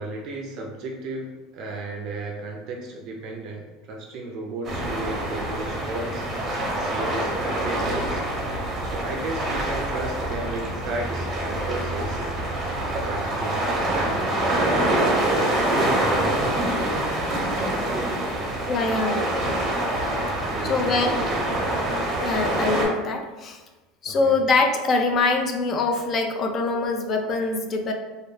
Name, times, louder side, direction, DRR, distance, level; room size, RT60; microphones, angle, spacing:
voice 1, 0.0-6.2 6.8-8.2 8.8-12.2 12.7-14.8 17.5-18.5 20.4-21.6 24.1-24.3, right 2 dB, 50° right, 0 dB, 0.4 m, -34 dB
sound 1, 4.6-22.9, right 1 dB, 30° right, 0.7 m, -25 dB
voice 2, 18.7-19.7 20.7-21.2 22.2-23.6 24.0-27.9, left 3 dB, 30° left, 4 dB, 0.3 m, -24 dB
2.3 x 2.2 x 3.1 m, 1.2 s
supercardioid pair, 135°, 0 cm